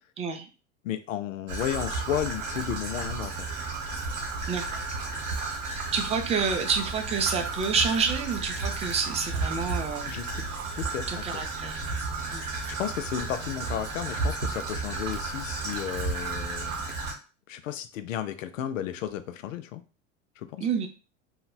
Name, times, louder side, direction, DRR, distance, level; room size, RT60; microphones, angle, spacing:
voice 1, 0.2-0.5 4.5-4.8 5.7-10.1 11.1-11.8 12.3-12.5 20.6-20.9, right 5 dB, 20° right, 5 dB, 0.3 m, -28 dB
voice 2, 0.8-3.3 10.0-10.4 10.7-11.0 12.7-16.8 17.5-19.8 20.4-20.7, left 10 dB, 80° left, 10 dB, 0.5 m, -33 dB
Traffic noise roadway noise / Trickle dribble, 1.5-17.1, right 3 dB, 80° right, 1.0 m, -33 dB
3.1 x 2.1 x 2.3 m, 0.33 s
hypercardioid pair, 95°, 38 cm